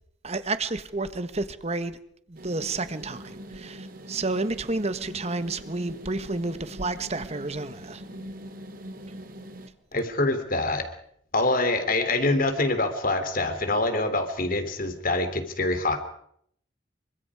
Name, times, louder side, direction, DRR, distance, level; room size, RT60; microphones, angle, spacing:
voice 1, 0.2-2.0 2.3-8.0, right 3 dB, 35° right, 1.4 m, -30 dB
sound 1, 2.4-9.7, equal, 50° right, 2.5 m, -42 dB
voice 2, 9.9-10.8 11.3-16.0, left 2 dB, 50° left, 3.2 m, -25 dB
27.5 x 24.5 x 4.9 m
head